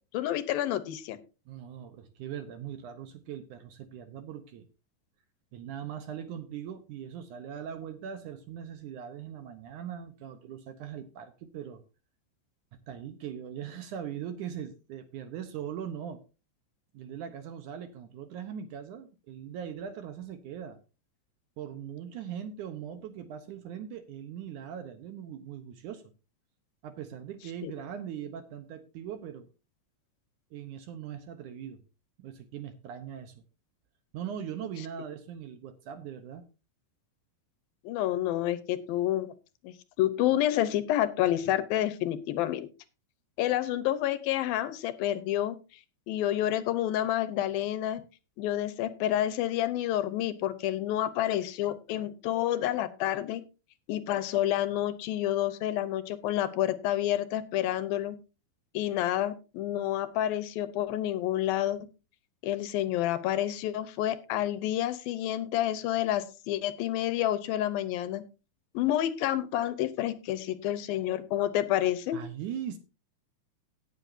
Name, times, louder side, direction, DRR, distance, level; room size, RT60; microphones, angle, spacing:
voice 1, 0.1-1.2 27.6-27.7 37.8-39.3 39.6-42.7 43.4-45.6 46.1-48.0 48.4-53.4 53.9-58.2 58.7-61.9 62.4-68.2 68.7-72.2, left 12 dB, 80° left, 13 dB, 2.6 m, -29 dB
voice 2, 1.5-4.7 5.5-11.8 12.9-16.2 16.9-20.8 21.6-26.0 26.8-29.5 30.5-31.8 32.2-33.4 34.1-36.5 72.1-72.8, right 9 dB, 70° right, 9 dB, 2.1 m, -40 dB
17.5 x 8.0 x 2.7 m, 0.31 s
omnidirectional pair, 4.2 m